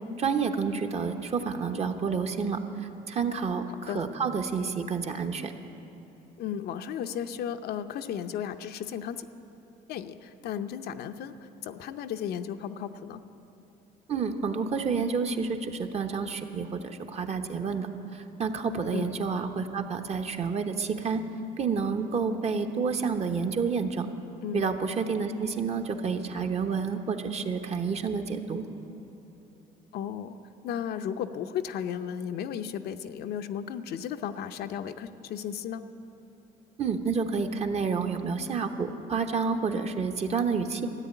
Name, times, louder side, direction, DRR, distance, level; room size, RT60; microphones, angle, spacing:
voice 1, 0.2-5.5 14.1-21.2 21.6-24.1 24.5-28.6 36.8-40.9, right 5 dB, 40° right, 6 dB, 1.0 m, -29 dB
voice 2, 6.4-9.3 9.9-13.2 18.9-19.1 24.4-24.7 29.9-30.4 30.6-35.8, left 9 dB, 70° left, 8 dB, 0.6 m, -34 dB
14.0 x 8.2 x 9.9 m, 2.9 s
cardioid pair, 110°, 17 cm